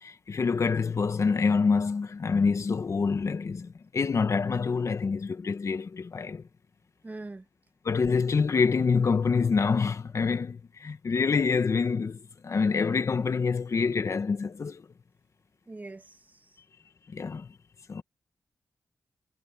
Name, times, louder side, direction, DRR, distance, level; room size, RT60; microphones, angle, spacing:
voice 1, 0.0-6.4 7.8-12.2 12.4-14.8 17.1-17.5 17.9-18.0, left 5 dB, 55° left, 1.3 m, -26 dB
voice 2, 7.0-7.5 15.7-16.6, right 2 dB, 25° right, 1.9 m, -43 dB
cardioid pair, 75°, 6 cm